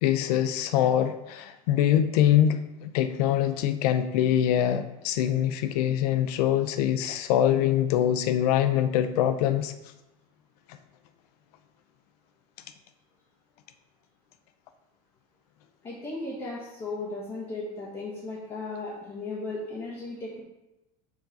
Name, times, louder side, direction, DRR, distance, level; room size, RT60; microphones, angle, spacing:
voice 1, 0.0-9.7, left 10 dB, 90° left, 10 dB, 0.5 m, -24 dB
voice 2, 15.8-20.4, left 2 dB, 30° left, -7 dB, 1.9 m, -36 dB
7.3 x 3.9 x 5.3 m, 0.95 s
cardioid pair, 150°, 19 cm